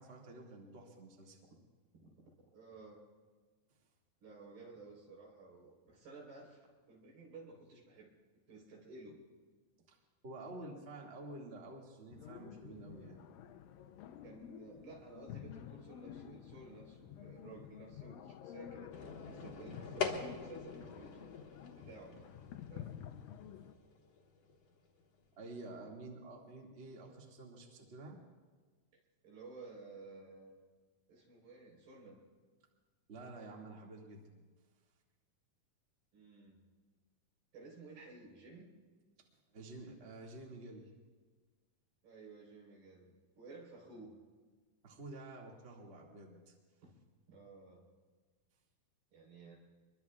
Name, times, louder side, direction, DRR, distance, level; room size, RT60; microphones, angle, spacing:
voice 1, 0.0-1.4 9.9-10.0 10.2-13.2 25.3-28.2 33.1-34.2 39.5-40.9 44.8-46.5, right 2 dB, 25° right, -1 dB, 1.5 m, -50 dB
voice 2, 2.5-3.0 4.2-8.1 8.5-9.2 14.2-21.2 21.7-22.3 22.7-23.0 29.2-30.6 31.1-32.2 36.1-36.6 37.5-38.7 42.0-44.2 46.8-46.9 47.3-47.9 49.1-49.6, right 3 dB, 85° right, -2 dB, 6.0 m, -54 dB
sound 1, 12.1-23.7, left 10 dB, 80° left, 2.3 m, -51 dB
sound 2, 18.9-25.6, left 5 dB, 55° left, 2.1 m, -44 dB
25.0 x 22.5 x 2.4 m, 1.4 s
omnidirectional pair, 4.2 m